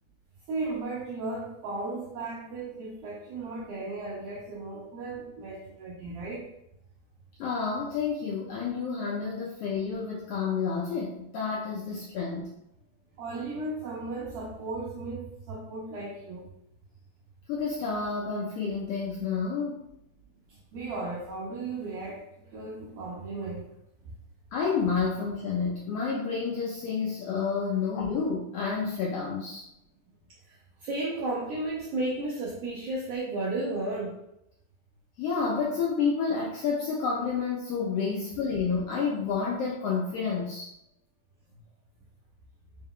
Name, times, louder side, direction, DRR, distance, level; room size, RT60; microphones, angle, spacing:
voice 1, 0.5-6.5 13.2-16.5 20.5-23.7 24.0-24.1 30.4-34.2, right 2 dB, 80° right, -4 dB, 1.4 m, -35 dB
voice 2, 7.4-12.5 17.5-19.8 24.5-29.6 35.2-40.7, left 5 dB, 80° left, -3 dB, 1.4 m, -29 dB
4.5 x 2.2 x 3.6 m, 0.81 s
omnidirectional pair, 3.3 m